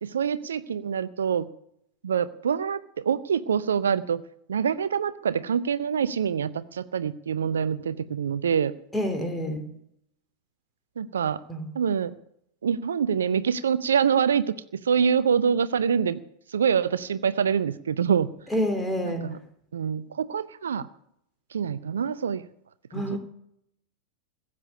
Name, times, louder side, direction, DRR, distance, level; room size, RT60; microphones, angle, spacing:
voice 1, 0.0-1.5 2.0-4.2 4.5-8.7 11.0-11.4 11.7-12.1 12.6-16.2 16.5-18.3 19.1-19.4 19.7-20.9 21.5-22.4 22.9-23.2, right 7 dB, 65° right, 16 dB, 0.5 m, -25 dB
voice 2, 8.9-9.6 11.5-11.7 18.5-19.3 22.9-23.2, equal, 5° left, 7 dB, 2.8 m, -28 dB
15.5 x 8.4 x 9.9 m, 0.74 s
figure-of-eight pair, 90°, 0 cm